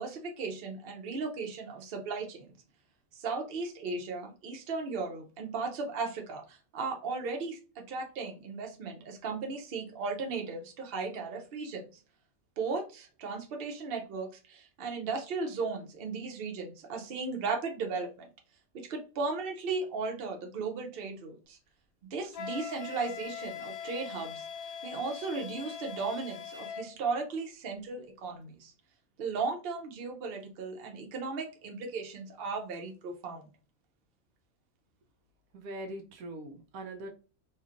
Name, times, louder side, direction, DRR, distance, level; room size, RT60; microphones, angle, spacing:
voice 1, 0.0-2.5 3.1-11.9 12.6-18.3 18.7-21.6 22.0-24.5 24.8-28.7 29.2-33.5, right 4 dB, 50° right, 2 dB, 0.8 m, -36 dB
Wind instrument woodwind instrument, 22.3-26.9, left 7 dB, 75° left, 1.0 m, -41 dB
voice 2, 35.5-37.1, right 1 dB, 90° right, 4 dB, 1.1 m, -41 dB
2.9 x 2.5 x 2.5 m, 0.33 s
omnidirectional pair, 1.4 m